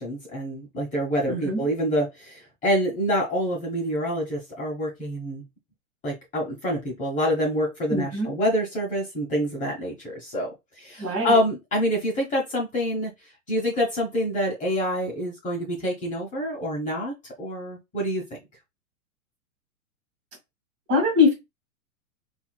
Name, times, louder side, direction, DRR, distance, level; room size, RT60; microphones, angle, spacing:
voice 1, 0.0-5.4 6.0-13.1 13.5-18.4, equal, 15° left, 1.1 m, -27 dB
voice 2, 1.3-1.7 7.9-8.3 11.0-11.4 20.9-21.3, left 4 dB, 30° right, 1.8 m, -22 dB
4.2 x 2.7 x 2.3 m
hypercardioid pair, 130°, 43 cm